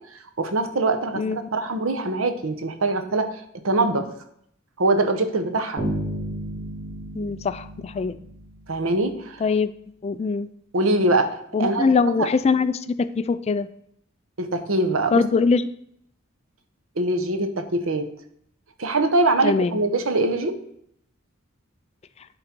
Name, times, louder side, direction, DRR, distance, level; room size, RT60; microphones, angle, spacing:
voice 1, 0.4-4.1 4.8-5.8 8.7-9.4 10.7-11.8 12.2-12.3 14.4-15.2 17.0-18.1 18.8-20.6, right 2 dB, 85° right, 8 dB, 0.9 m, -23 dB
voice 2, 1.2-1.5 7.1-8.2 9.4-9.7 10.0-10.5 11.5-13.7 15.1-15.7 19.4-19.8, left 4 dB, 30° left, 13 dB, 0.3 m, -22 dB
sound 1, 5.8-8.8, right 1 dB, 20° right, 3.2 m, -32 dB
10.5 x 3.9 x 4.5 m, 0.69 s
head